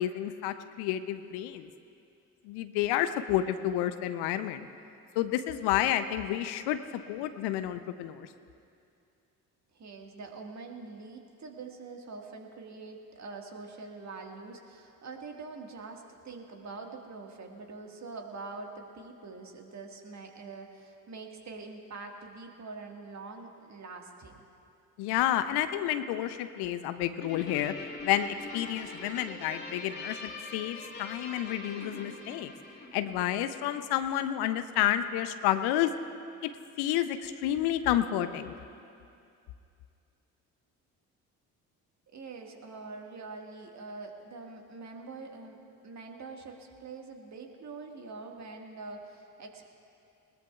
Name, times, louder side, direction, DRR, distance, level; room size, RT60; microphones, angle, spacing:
voice 1, 0.0-1.7 2.4-4.7 5.2-6.8 7.1-8.3 25.0-27.7 28.0-32.5 32.9-35.9 36.4-36.5 36.8-38.5, left 12 dB, 55° left, 11 dB, 0.7 m, -30 dB
voice 2, 9.7-24.4 42.1-45.6 45.8-49.6, right 3 dB, 35° right, 2 dB, 1.8 m, -44 dB
Guitar, 27.2-33.9, left 3 dB, 20° left, 2.7 m, -43 dB
20.5 x 19.5 x 2.4 m, 2.5 s
figure-of-eight pair, 50°, 45 cm